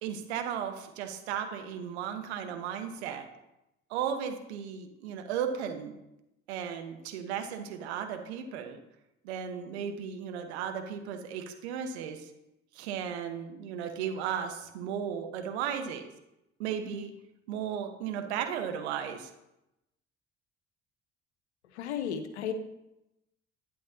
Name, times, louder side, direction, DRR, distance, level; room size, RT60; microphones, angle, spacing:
voice 1, 0.0-3.3 3.9-6.0 6.5-8.8 9.2-12.3 12.7-16.1 16.6-17.1 17.5-19.3, right 8 dB, 80° right, 7 dB, 1.0 m, -35 dB
voice 2, 21.7-22.5, left 8 dB, 85° left, 9 dB, 0.8 m, -33 dB
11.5 x 9.7 x 2.8 m, 0.90 s
hypercardioid pair, 55°, 32 cm